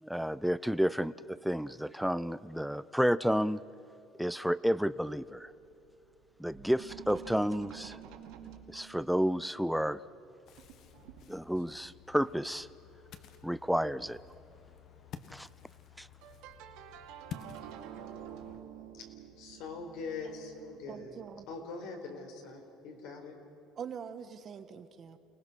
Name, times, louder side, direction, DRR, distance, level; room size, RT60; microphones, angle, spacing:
voice 1, 0.0-3.6 4.2-5.5 6.4-8.0 8.7-10.0 11.3-12.7 13.4-14.2 15.3-15.5 16.0-16.1, equal, ahead, 17 dB, 0.4 m, -31 dB
sound 1, 5.2-6.2 6.5-9.5 10.0-10.3 10.6-11.8 13.2-13.3 13.7-13.8 14.1-14.4 16.2-21.6, right 10 dB, 80° right, 2.6 m, -50 dB
Ocean, 10.5-18.6, left 8 dB, 50° left, 1.4 m, -51 dB
voice 2, 19.4-23.3, left 4 dB, 75° left, 3 dB, 4.4 m, -43 dB
voice 3, 20.9-21.5 23.8-25.2, right 7 dB, 35° right, 10 dB, 1.3 m, -43 dB
29.5 x 19.5 x 6.3 m, 2.9 s
cardioid pair, 145°, 0 cm